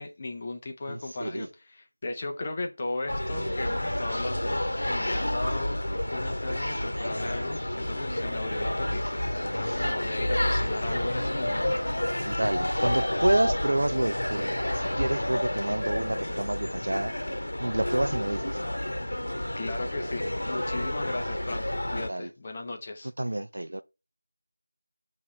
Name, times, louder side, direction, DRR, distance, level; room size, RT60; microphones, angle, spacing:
voice 1, 0.0-1.5 1.7-9.3 9.5-11.7 19.6-23.1, left 2 dB, 15° left, 0.5 m, -36 dB
voice 2, 0.9-1.5 9.7-9.9 12.2-17.1 17.6-18.6 22.1-22.3 23.2-23.8, right 1 dB, 55° right, 0.4 m, -29 dB
sound 1, 3.1-22.1, left 1 dB, 75° left, 0.9 m, -30 dB
6.5 x 2.9 x 4.9 m
figure-of-eight pair, 175°, 0 cm